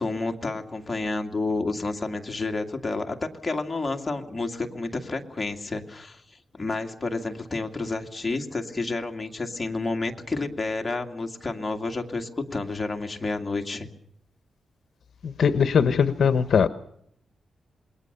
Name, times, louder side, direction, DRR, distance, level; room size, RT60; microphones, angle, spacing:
voice 1, 0.0-6.2 6.5-13.9, left 3 dB, 15° left, 2.3 m, -30 dB
voice 2, 15.2-16.7, left 6 dB, 60° left, 1.0 m, -20 dB
27.5 x 21.5 x 6.8 m
wide cardioid pair, 175°, 0 cm